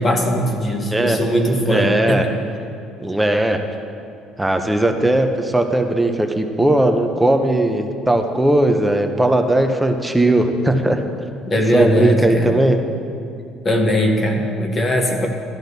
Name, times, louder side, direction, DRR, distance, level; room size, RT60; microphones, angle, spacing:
voice 1, 0.0-2.2 11.5-12.6 13.6-15.3, equal, 20° left, 3 dB, 0.8 m, -19 dB
voice 2, 1.7-2.2 3.0-3.6 4.4-11.0 11.7-12.8, right 1 dB, 5° right, 5 dB, 0.5 m, -18 dB
13.0 x 12.5 x 2.6 m, 2.4 s
cardioid pair, 180°, 0 cm